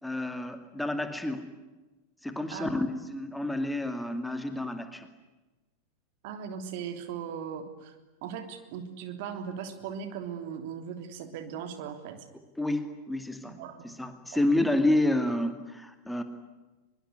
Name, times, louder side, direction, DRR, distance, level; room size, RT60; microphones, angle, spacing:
voice 1, 0.0-1.5 2.2-5.1 12.6-13.6 13.8-16.2, left 1 dB, 5° left, 8 dB, 2.3 m, -29 dB
voice 2, 6.2-7.9 8.2-12.2 13.6-14.0 14.4-14.7, right 7 dB, 50° right, 8 dB, 3.3 m, -38 dB
23.5 x 23.0 x 9.7 m, 1.1 s
figure-of-eight pair, 90°, 0 cm